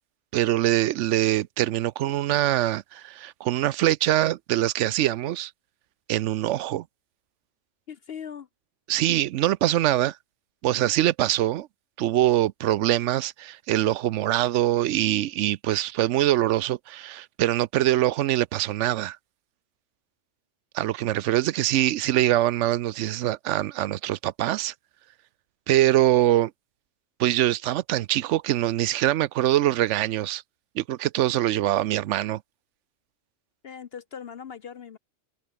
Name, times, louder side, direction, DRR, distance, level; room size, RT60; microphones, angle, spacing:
voice 1, 0.3-5.5 6.1-6.8 8.9-10.2 10.6-11.7 12.0-19.2 20.7-24.7 25.7-26.5 27.2-30.4 30.8-32.4, right 14 dB, 75° right, 0.9 m, -23 dB
voice 2, 7.9-8.5 33.6-35.0, left 7 dB, 55° left, 0.9 m, -39 dB
omnidirectional pair, 1.3 m